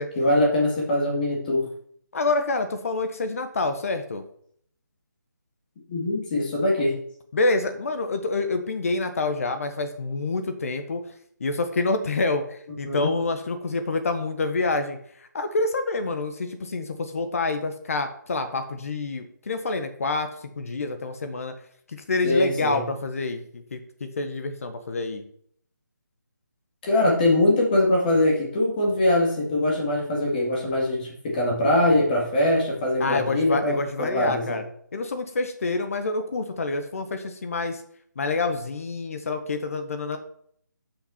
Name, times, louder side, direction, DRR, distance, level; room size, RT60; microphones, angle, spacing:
voice 1, 0.2-1.7 5.9-6.9 12.8-13.1 22.2-22.8 26.8-34.6, left 1 dB, 25° left, -2 dB, 2.3 m, -22 dB
voice 2, 2.1-4.2 7.3-11.0 11.4-20.3 20.6-21.5 21.9-25.2 33.0-34.6 34.9-37.8 38.2-40.2, left 3 dB, 50° left, 9 dB, 1.2 m, -27 dB
11.0 x 5.8 x 4.3 m, 0.63 s
figure-of-eight pair, 160°, 10 cm